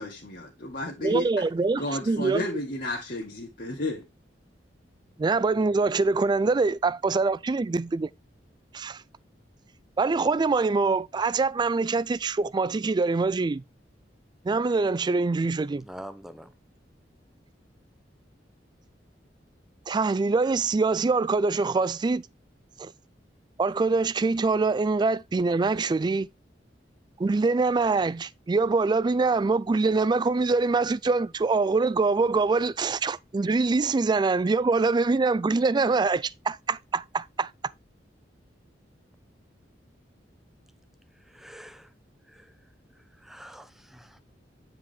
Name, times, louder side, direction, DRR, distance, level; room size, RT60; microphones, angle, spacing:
voice 1, 0.0-1.2 1.8-4.1, left 1 dB, 55° left, 1.8 m, -32 dB
voice 2, 1.0-2.5 5.2-8.1 8.7-9.0 10.0-13.6 14.4-15.8 19.9-22.3 22.8-22.9 23.6-26.3 27.2-37.5, right 3 dB, 25° right, 0.3 m, -24 dB
voice 3, 15.7-16.5 41.1-41.9 42.2-42.6 42.9-44.2, equal, ahead, 0.7 m, -46 dB
9.2 x 4.9 x 3.5 m
head